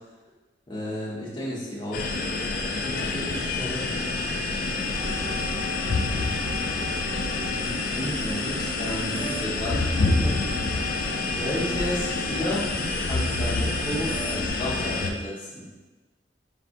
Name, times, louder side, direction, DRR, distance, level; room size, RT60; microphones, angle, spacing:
voice 1, 0.7-2.1 7.6-9.8 11.3-12.7 13.0-15.6, equal, 25° left, -8 dB, 1.2 m, -32 dB
sound 1, 1.9-15.1, left 3 dB, 50° left, 0.4 m, -27 dB
voice 2, 2.8-3.9 10.2-10.4, equal, 5° right, -10 dB, 0.5 m, -36 dB
sound 2, 4.9-14.5, equal, 55° right, 0.6 m, -37 dB
4.9 x 3.2 x 2.6 m, 1.2 s
head